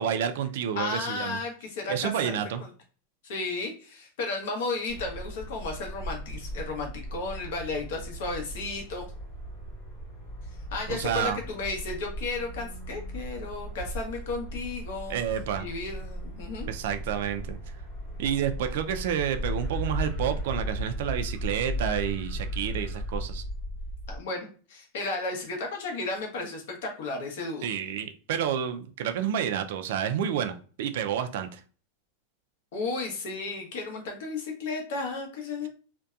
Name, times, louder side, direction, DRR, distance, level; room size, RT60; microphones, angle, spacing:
voice 1, 0.0-1.4 1.9-2.6 10.9-11.4 15.1-15.7 16.7-17.6 18.2-23.4 27.6-31.6, right 9 dB, 55° right, 0.3 m, -29 dB
voice 2, 0.8-2.7 3.2-9.1 10.7-15.2 15.6-16.7 24.1-27.7 32.7-35.7, left 3 dB, 60° left, 0.8 m, -34 dB
sound 1, 4.9-24.2, equal, 15° left, 1.0 m, -36 dB
2.6 x 2.1 x 2.3 m
supercardioid pair, 175°, 0 cm